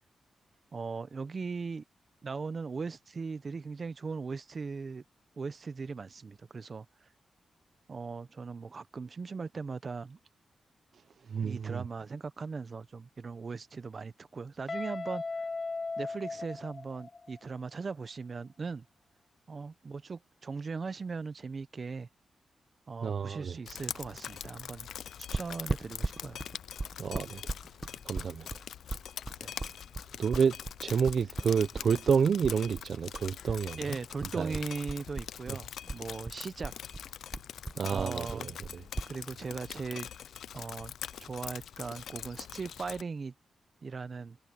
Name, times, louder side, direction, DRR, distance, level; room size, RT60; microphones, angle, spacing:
voice 1, 0.7-1.8 2.2-5.0 5.4-6.9 7.9-10.2 11.4-15.2 16.0-18.8 19.5-22.1 22.9-24.9 25.3-26.4 29.4-29.5 33.8-36.7 37.8-38.5 39.1-40.1 40.5-40.9 41.2-43.3 43.8-44.4, right 4 dB, 50° right, 1.1 m, -39 dB
voice 2, 11.3-11.8 23.0-23.6 27.0-27.4 28.1-28.5 30.2-30.5 30.8-33.8 34.3-34.5 37.8-38.4 38.7-38.8, right 6 dB, 70° right, 0.7 m, -29 dB
Guitar, 14.7-17.5, left 3 dB, 40° left, 1.3 m, -37 dB
Drip, 23.7-43.0, left 9 dB, 85° left, 0.5 m, -43 dB
sound 1, 25.3-33.6 33.9-35.6 35.9-39.1, right 3 dB, 30° right, 1.6 m, -38 dB
cardioid pair, 55°, 0 cm